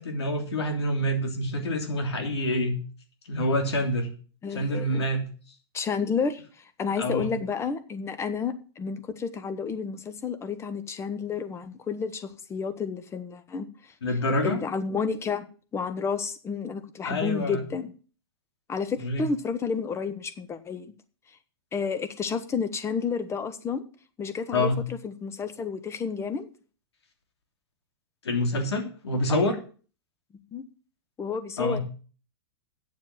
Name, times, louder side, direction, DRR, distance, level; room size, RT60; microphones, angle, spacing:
voice 1, 0.0-2.8 3.3-4.1 4.5-5.2 7.0-7.3 14.0-14.6 17.0-17.6 19.0-19.3 24.5-24.8 28.2-29.6 31.6-31.8, left 1 dB, 90° left, 5 dB, 3.1 m, -27 dB
voice 2, 4.4-5.1 5.7-13.9 14.4-15.5 15.7-17.9 18.7-20.9 21.7-23.8 24.2-26.5 30.5-30.6 31.2-31.8, left 5 dB, 20° left, 11 dB, 1.3 m, -31 dB
9.2 x 7.3 x 7.7 m, 0.39 s
hypercardioid pair, 125°, 13 cm